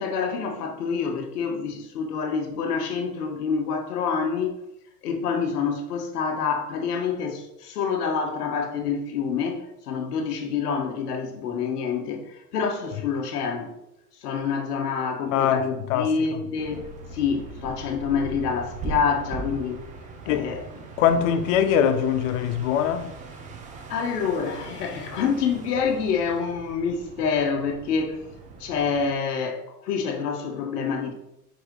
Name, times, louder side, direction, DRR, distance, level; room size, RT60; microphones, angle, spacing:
voice 1, 0.0-4.5 5.0-13.8 14.2-16.8 17.1-19.8 20.2-20.6 23.9-28.3 28.6-31.1, left 6 dB, 70° left, 1.6 m, -27 dB
voice 2, 15.3-16.4 20.3-20.5 21.0-23.1, left 8 dB, 50° left, 0.7 m, -23 dB
sound 1, 16.6-29.1, right 4 dB, 15° right, 0.6 m, -40 dB
5.1 x 4.7 x 4.8 m
hypercardioid pair, 135°, 48 cm